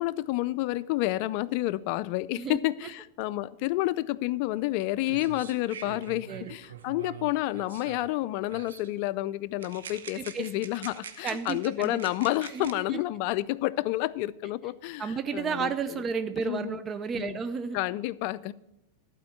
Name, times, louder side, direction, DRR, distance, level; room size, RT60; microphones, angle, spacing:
voice 1, 0.0-16.0 16.4-16.8 17.2-17.4 17.7-18.5, left 17 dB, 55° left, 16 dB, 0.4 m, -30 dB
sound 1, 4.7-4.8 5.0-8.2 8.5-8.9 9.6-12.7, right 8 dB, 90° right, 0.8 m, -45 dB
voice 2, 10.2-10.5 11.2-12.0 12.5-13.0 15.0-17.8, right 6 dB, 25° right, 12 dB, 0.4 m, -32 dB
11.5 x 4.4 x 7.0 m, 0.88 s
hypercardioid pair, 120°, 0 cm